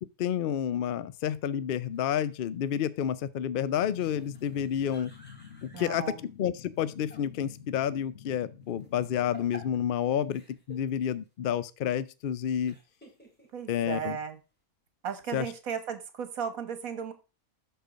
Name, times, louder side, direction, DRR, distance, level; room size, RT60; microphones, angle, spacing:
voice 1, 0.2-5.1 5.6-10.4 10.7-12.7 13.7-14.2 15.3-15.5, left 9 dB, 70° left, 0.5 m, -30 dB
sound 1, 1.9-2.5 3.9-6.0 6.7-7.2 7.5-7.6 8.7-10.0 10.3-10.8 11.3-11.4 12.6-13.9, equal, 5° left, 2.7 m, -52 dB
sound 2, 3.7-9.9, left 8 dB, 45° left, 1.3 m, -50 dB
voice 2, 5.7-6.2 13.5-14.4 15.0-17.1, right 7 dB, 70° right, 1.6 m, -35 dB
12.0 x 4.5 x 5.0 m
omnidirectional pair, 1.5 m